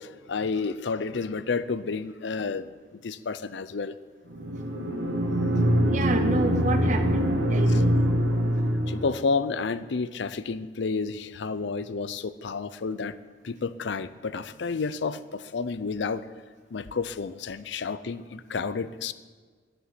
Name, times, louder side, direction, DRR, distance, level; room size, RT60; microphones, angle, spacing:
voice 1, 0.0-2.7 3.0-3.9 7.7-7.8 8.9-13.1 13.4-16.3 16.7-19.1, left 4 dB, 70° left, 14 dB, 0.5 m, -30 dB
sound 1, 4.3-9.2, equal, 90° right, 1.6 m, -24 dB
voice 2, 5.9-7.9, right 3 dB, 40° right, 6 dB, 0.6 m, -29 dB
11.0 x 7.8 x 8.3 m, 1.5 s
head